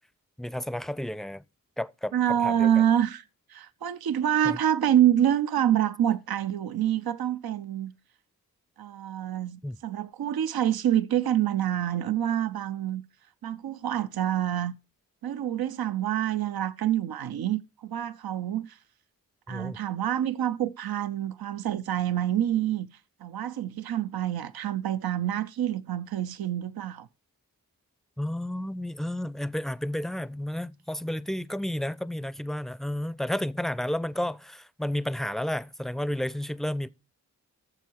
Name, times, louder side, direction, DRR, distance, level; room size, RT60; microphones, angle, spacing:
voice 1, 0.4-1.4 1.8-2.7 4.5-4.6 9.6-9.8 19.5-19.8 28.2-36.9, left 1 dB, ahead, 0.5 m, -31 dB
voice 2, 2.1-3.2 3.5-7.9 8.8-13.0 13.4-14.8 15.2-18.8 19.5-22.9 23.2-27.1, right 11 dB, 85° right, 0.6 m, -27 dB
14.0 x 6.9 x 4.6 m
cardioid pair, 40°, 36 cm